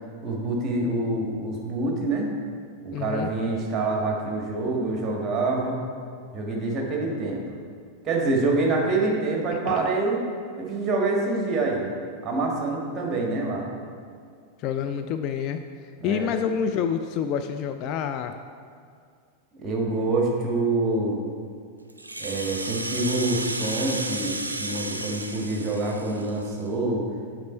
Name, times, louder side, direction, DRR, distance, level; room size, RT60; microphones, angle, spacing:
voice 1, 0.2-2.3 2.8-5.8 6.3-7.4 8.0-10.2 10.6-11.9 12.2-13.7 16.0-16.3 19.6-21.2 22.2-27.1, right 2 dB, 25° right, 0 dB, 1.5 m, -26 dB
voice 2, 2.9-3.3 9.7-9.9 14.6-18.4, left 8 dB, 40° left, 7 dB, 0.3 m, -28 dB
Rattle (instrument), 21.9-26.7, right 2 dB, 80° right, 0.4 m, -33 dB
7.3 x 5.1 x 4.3 m, 2.2 s
figure-of-eight pair, 90°, 0 cm